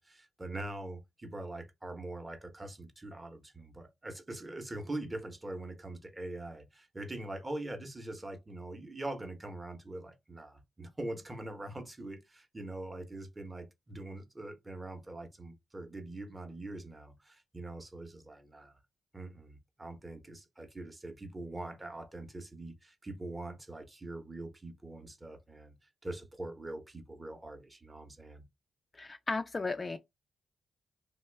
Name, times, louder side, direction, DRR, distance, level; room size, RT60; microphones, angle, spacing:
voice 1, 0.0-18.8 19.1-25.8 26.0-28.4, right 2 dB, 20° right, 0.8 m, -43 dB
voice 2, 28.9-30.0, left 3 dB, 30° left, 0.3 m, -35 dB
3.0 x 2.2 x 3.3 m
cardioid pair, 80°, 0 cm